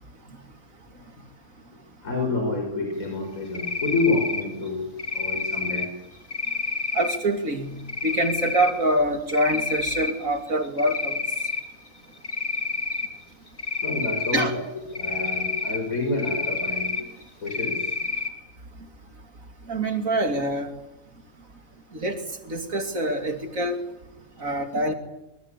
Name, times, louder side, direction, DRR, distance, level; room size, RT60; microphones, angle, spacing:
voice 1, 1.4-4.9 5.1-5.9 13.7-14.6 14.9-17.0 17.4-18.1 24.4-24.5, left 3 dB, 75° left, 2 dB, 5.7 m, -28 dB
Cricket, 3.5-4.4 5.0-5.9 6.3-7.2 7.9-8.7 9.1-10.1 10.5-11.6 12.2-13.1 13.6-14.5 15.0-15.8 16.2-17.0 17.5-18.3, left 3 dB, 35° left, 2.6 m, -28 dB
voice 2, 6.9-11.2 14.3-14.5 19.7-20.7 21.9-22.2 22.4-23.8 24.4-24.9, right 1 dB, 70° right, 6 dB, 3.2 m, -25 dB
24.5 x 24.5 x 10.0 m, 0.94 s
omnidirectional pair, 1.5 m